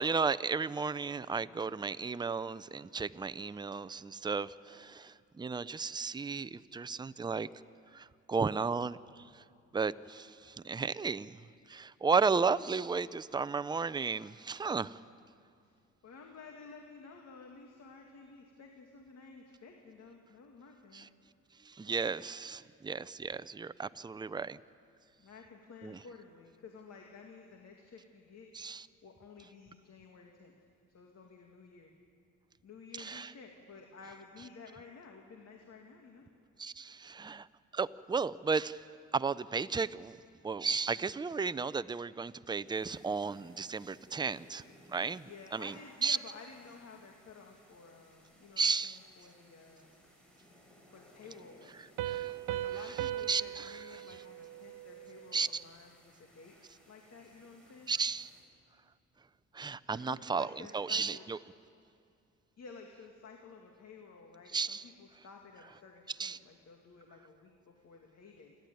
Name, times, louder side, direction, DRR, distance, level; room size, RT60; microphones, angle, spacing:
voice 1, 0.0-7.5 7.9-9.0 9.7-11.4 11.7-15.0 20.9-21.1 21.7-24.6 25.8-26.0 28.5-28.9 33.0-33.3 36.6-37.5 37.7-38.8 39.1-40.2 40.4-44.6 44.9-45.7 46.0-46.2 48.6-49.0 52.0-52.3 53.3-53.9 55.3-55.6 57.9-58.3 59.5-61.4 64.5-64.8 66.2-66.4, right 5 dB, 15° right, 15 dB, 0.5 m, -34 dB
voice 2, 16.0-21.1 25.2-28.5 29.0-30.5 30.9-31.9 32.6-36.3 45.2-49.9 50.9-51.9 52.5-56.5 56.9-57.9 59.9-61.3 62.6-68.6, left 4 dB, 60° left, 2 dB, 2.3 m, -53 dB
sound 1, 42.7-58.4, equal, 5° left, 6.9 m, -62 dB
Piano, 52.0-55.4, right 13 dB, 85° right, 0.6 m, -39 dB
28.5 x 12.0 x 9.3 m, 2.4 s
cardioid pair, 90°, 30 cm